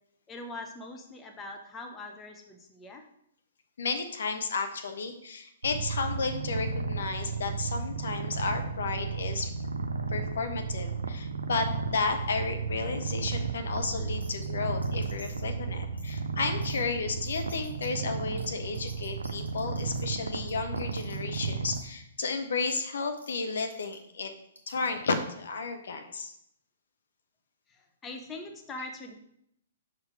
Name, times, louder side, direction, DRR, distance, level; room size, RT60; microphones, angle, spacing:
voice 1, 0.3-3.0 27.7-29.1, left 2 dB, 15° left, 4 dB, 0.8 m, -42 dB
voice 2, 3.8-9.5 10.1-24.3 24.7-26.3, left 4 dB, 60° left, 6 dB, 0.8 m, -33 dB
Purr, 5.6-21.8, right 4 dB, 70° right, 0.7 m, -34 dB
sound 1, 14.2-14.5 14.8-15.5 16.0-16.2 16.6-16.8 17.3-17.9 18.4-18.5 18.7-20.0 20.5-21.5 21.7-21.8 22.7-22.8 23.2-23.3 23.6-24.0 24.6-25.1, equal, 90° left, 1.2 m, -51 dB
6.2 x 4.5 x 4.8 m, 0.74 s
figure-of-eight pair, 120°, 0 cm